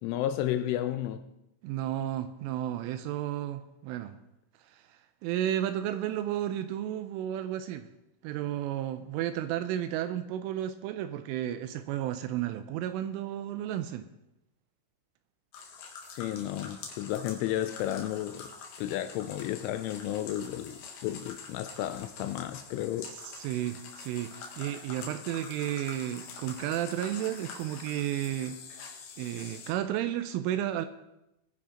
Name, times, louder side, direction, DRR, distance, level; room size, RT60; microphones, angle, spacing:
voice 1, 0.0-1.2 16.1-18.5 18.8-23.1, left 12 dB, 80° left, 2.9 m, -32 dB
voice 2, 1.6-4.2 4.6-7.9 8.2-14.1 23.1-28.6 29.2-30.9, right 12 dB, 85° right, 2.9 m, -33 dB
sound 1, 15.5-29.7, left 5 dB, 65° left, 3.7 m, -46 dB
21.0 x 10.0 x 3.8 m
omnidirectional pair, 6.0 m